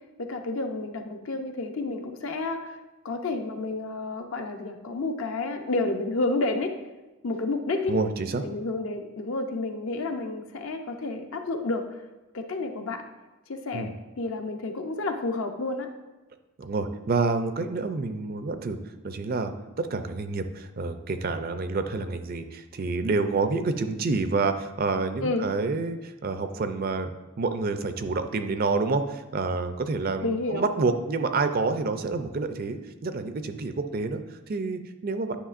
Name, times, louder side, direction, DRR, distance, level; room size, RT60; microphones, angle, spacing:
voice 1, 0.2-2.8 3.0-6.8 7.2-8.0 8.4-11.9 12.3-13.1 13.5-15.9 25.2-25.5 30.2-30.7, left 2 dB, 65° left, 5 dB, 0.7 m, -30 dB
voice 2, 7.9-8.4 13.7-13.9 16.6-27.1 27.4-35.4, right 3 dB, 40° right, 8 dB, 0.4 m, -28 dB
9.9 x 5.8 x 2.5 m, 1.1 s
head